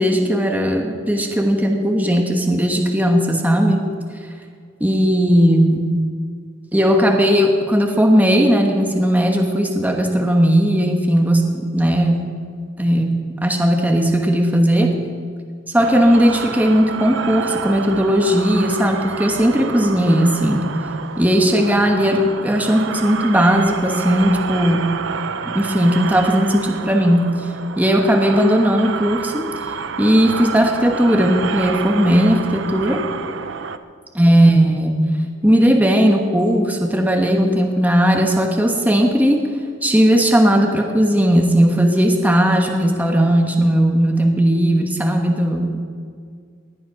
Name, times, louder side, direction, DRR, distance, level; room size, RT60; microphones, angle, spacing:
voice 1, 0.0-3.8 4.8-5.9 6.7-12.2 12.8-15.0 15.7-20.7 21.2-24.9 25.5-27.3 27.8-29.5 30.0-33.0 34.1-35.1 35.4-39.4 39.8-45.8, equal, 10° right, 2 dB, 1.2 m, -17 dB
sound 1, 15.8-33.8, right 5 dB, 75° right, 0.7 m, -29 dB
19.0 x 11.0 x 5.8 m, 2.1 s
head